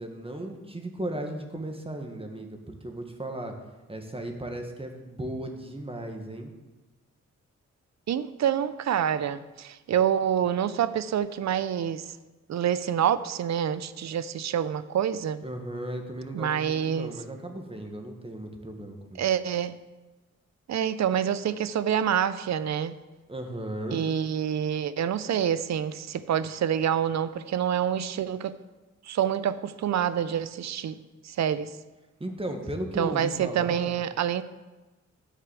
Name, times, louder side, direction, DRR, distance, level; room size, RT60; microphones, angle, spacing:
voice 1, 0.0-3.5 3.9-6.5 15.4-19.2 23.3-24.0 32.2-33.9, right 1 dB, 20° right, 4 dB, 1.7 m, -36 dB
voice 2, 8.1-12.2 12.5-15.4 16.3-17.1 19.2-19.8 20.7-22.9 23.9-28.6 29.1-31.0 31.2-31.7 33.0-34.4, right 9 dB, 65° right, 15 dB, 0.6 m, -27 dB
10.0 x 4.7 x 7.6 m, 1.2 s
cardioid pair, 60°, 30 cm